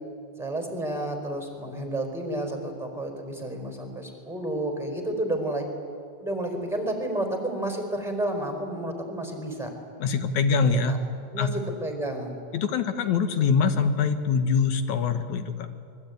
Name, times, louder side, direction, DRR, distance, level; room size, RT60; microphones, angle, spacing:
voice 1, 0.4-5.6 6.2-9.7 10.5-10.6 10.9-11.0 11.3-12.4, right 1 dB, ahead, 3 dB, 4.4 m, -31 dB
voice 2, 10.0-11.0 11.4-11.5 12.5-15.5, left 5 dB, 75° left, 8 dB, 2.9 m, -23 dB
25.0 x 22.5 x 9.4 m, 2.3 s
omnidirectional pair, 3.4 m